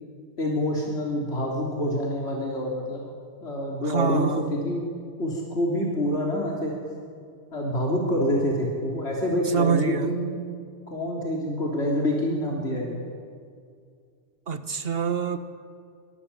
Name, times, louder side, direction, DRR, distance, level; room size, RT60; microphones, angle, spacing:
voice 1, 0.4-3.0 3.4-4.9 5.2-6.7 7.5-10.4 10.9-13.0, equal, 75° left, -3 dB, 3.8 m, -26 dB
voice 2, 3.8-4.6 9.5-10.2 14.5-15.4, right 7 dB, 60° right, 9 dB, 1.8 m, -26 dB
25.5 x 25.0 x 8.6 m, 2.3 s
omnidirectional pair, 1.1 m